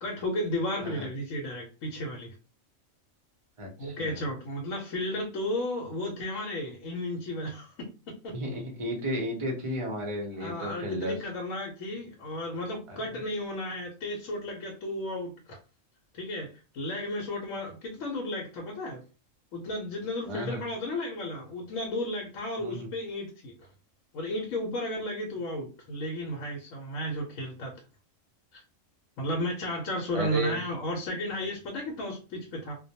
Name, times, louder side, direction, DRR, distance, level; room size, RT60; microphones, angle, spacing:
voice 1, 0.0-2.3 3.8-7.9 8.2-8.3 10.4-15.6 16.1-16.5 16.7-19.0 19.5-23.5 24.1-27.7 28.5-28.6 29.2-32.8, left 1 dB, 80° left, 1.0 m, -33 dB
voice 2, 3.6-4.2 8.3-11.2 12.9-13.2 20.3-20.6 22.6-22.9 30.1-30.6, equal, 35° right, 0.5 m, -33 dB
2.2 x 2.2 x 2.7 m
omnidirectional pair, 1.4 m